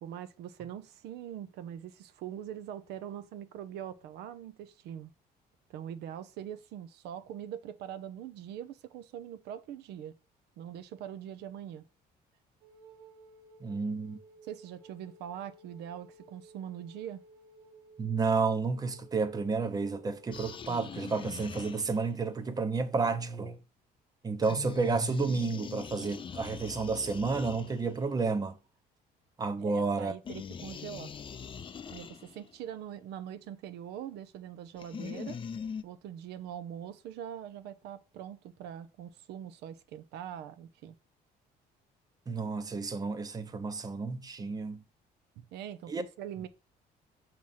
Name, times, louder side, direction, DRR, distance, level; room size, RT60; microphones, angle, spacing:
voice 1, 0.0-5.1 5.7-10.1 10.6-11.8 14.4-17.2 29.6-31.1 31.9-35.4 35.8-40.9 45.4-46.5, right 10 dB, 80° right, 0.6 m, -43 dB
Wind instrument woodwind instrument, 12.6-21.1, right 1 dB, 60° right, 1.6 m, -57 dB
voice 2, 13.6-14.2 18.0-23.6 24.2-28.6 29.4-30.1 42.3-44.8 45.9-46.0, right 4 dB, 20° right, 0.7 m, -31 dB
sound 1, 20.3-22.2 24.4-28.1 30.2-32.5 34.8-35.8, left 6 dB, 30° left, 0.5 m, -42 dB
6.2 x 2.9 x 5.5 m
cardioid pair, 110°, 17 cm